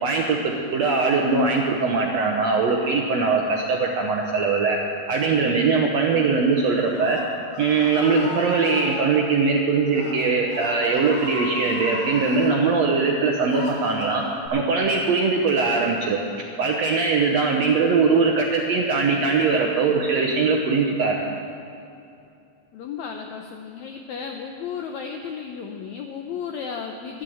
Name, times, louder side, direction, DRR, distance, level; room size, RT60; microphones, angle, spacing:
voice 1, 0.0-4.8 5.1-7.2 7.6-14.2 14.5-16.2 16.6-21.2, right 4 dB, 75° right, 0 dB, 1.6 m, -21 dB
Screaming, 6.6-9.0 9.8-10.1 10.5-12.5 13.1-14.5, left 2 dB, 55° left, 3.6 m, -36 dB
voice 2, 22.7-27.2, left 6 dB, 85° left, 3 dB, 1.6 m, -34 dB
12.5 x 10.5 x 7.8 m, 2.6 s
omnidirectional pair, 4.2 m